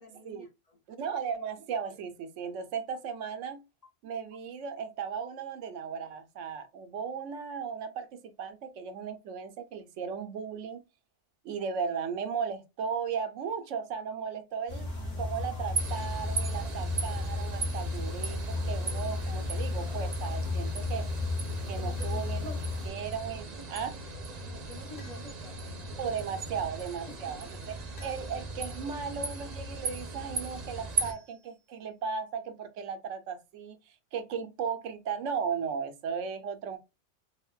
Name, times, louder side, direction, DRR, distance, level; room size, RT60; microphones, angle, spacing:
voice 1, 0.0-0.8 21.8-22.9 24.4-26.0 27.0-27.5, left 3 dB, 35° left, 0.8 m, -49 dB
voice 2, 1.0-3.6 4.0-10.8 11.4-14.9 15.2-21.1 21.7-22.5 22.8-24.0 26.0-36.8, right 6 dB, 85° right, 1.0 m, -36 dB
sound 1, 14.7-22.9, left 3 dB, 60° left, 1.8 m, -33 dB
sound 2, 15.8-31.1, right 3 dB, 45° right, 0.6 m, -37 dB
sound 3, 22.0-22.5 25.0-25.7 28.0-28.7 31.0-31.8, left 2 dB, 85° left, 1.9 m, -57 dB
3.7 x 2.0 x 2.2 m
omnidirectional pair, 1.2 m